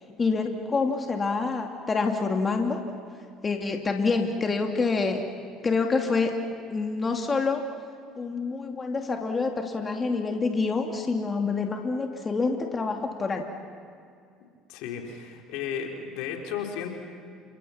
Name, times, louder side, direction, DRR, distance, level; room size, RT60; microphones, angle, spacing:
voice 1, 0.2-2.8 3.4-5.2 5.6-6.3 6.7-7.6 8.2-13.5, left 4 dB, 30° left, 3 dB, 2.8 m, -27 dB
voice 2, 14.7-16.9, left 8 dB, 70° left, 2 dB, 4.0 m, -34 dB
30.0 x 27.5 x 5.9 m, 2.3 s
hypercardioid pair, 70°, 0 cm